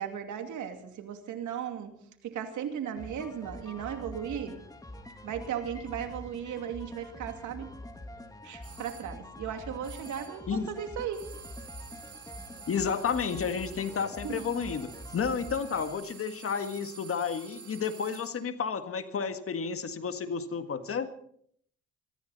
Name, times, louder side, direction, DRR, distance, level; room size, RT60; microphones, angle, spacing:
voice 1, 0.0-1.9 2.2-4.6 5.2-7.7 8.4-11.3 14.2-14.5, right 9 dB, 75° right, 6 dB, 2.5 m, -36 dB
sound 1, 3.0-16.0, left 1 dB, 10° left, 1.8 m, -45 dB
sound 2, 8.6-9.1 9.8-10.5 11.1-18.5, right 6 dB, 50° right, 2.8 m, -49 dB
voice 2, 12.7-21.1, left 6 dB, 45° left, 9 dB, 1.7 m, -31 dB
23.0 x 14.5 x 4.1 m, 0.64 s
cardioid pair, 90°, 30 cm